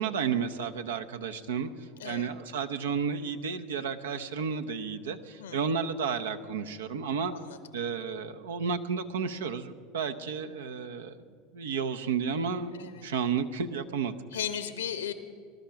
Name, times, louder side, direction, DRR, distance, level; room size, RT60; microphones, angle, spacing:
voice 1, 0.0-1.7 2.0-7.3 7.7-11.2 11.5-14.2, right 6 dB, 85° right, 7 dB, 0.8 m, -32 dB
voice 2, 7.3-7.6 12.7-13.1 14.3-15.1, left 9 dB, 85° left, 10 dB, 1.1 m, -36 dB
19.5 x 12.0 x 5.8 m, 2.1 s
hypercardioid pair, 85°, 0 cm